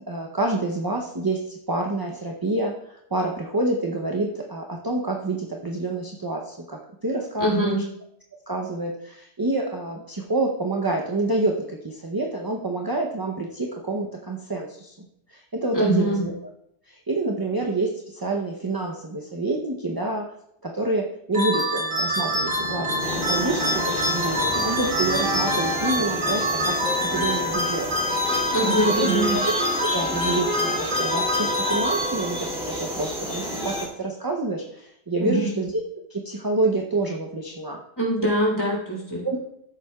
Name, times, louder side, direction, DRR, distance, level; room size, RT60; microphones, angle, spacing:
voice 1, 0.1-7.8 8.5-16.3 16.9-20.3 20.6-27.9 28.4-29.1 29.5-35.7 36.1-37.8 39.2-39.4, right 2 dB, 25° right, 1 dB, 0.7 m, -28 dB
voice 2, 7.4-7.8 15.7-16.2 28.5-29.3 35.2-35.5 37.9-39.2, right 1 dB, 20° left, -5 dB, 3.4 m, -23 dB
sound 1, 21.3-32.6, equal, 75° right, 2.7 m, -26 dB
Motorcycle, 21.8-29.9, left 3 dB, 60° left, 1.3 m, -37 dB
sound 2, 23.0-33.9, equal, 5° right, 2.6 m, -30 dB
14.0 x 7.5 x 2.3 m, 0.72 s
omnidirectional pair, 1.1 m